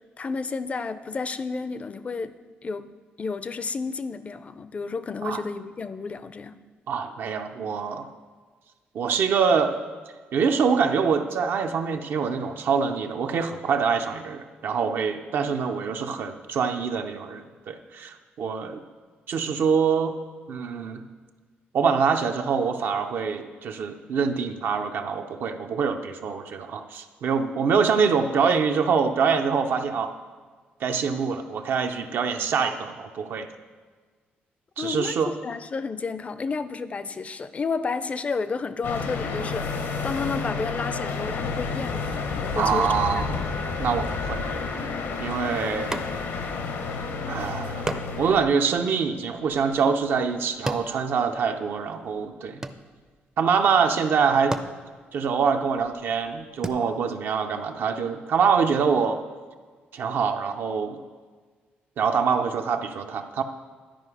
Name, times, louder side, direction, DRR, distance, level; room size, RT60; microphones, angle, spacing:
voice 1, 0.2-2.4 2.6-2.9 3.2-6.6 34.8-35.1 35.4-43.3, left 4 dB, 35° left, 13 dB, 0.4 m, -31 dB
voice 2, 6.9-8.1 8.9-9.8 10.3-18.8 19.3-20.1 20.5-21.0 21.7-30.1 30.8-33.5 34.8-35.3 42.6-43.4 43.8-44.5 45.2-45.9 47.3-47.9 48.2-52.6 53.4-54.6 55.1-59.2 59.9-61.0 62.0-63.4, right 6 dB, 65° right, 6 dB, 0.7 m, -25 dB
sound 1, 38.8-48.4, left 4 dB, 75° left, 0.9 m, -30 dB
sound 2, 45.9-46.5 46.8-46.9 47.9-51.8 52.1-53.3 54.0-54.1 54.4-56.7, right 2 dB, 15° right, 0.5 m, -36 dB
11.5 x 4.9 x 4.8 m, 1.5 s
cardioid pair, 90°, 4 cm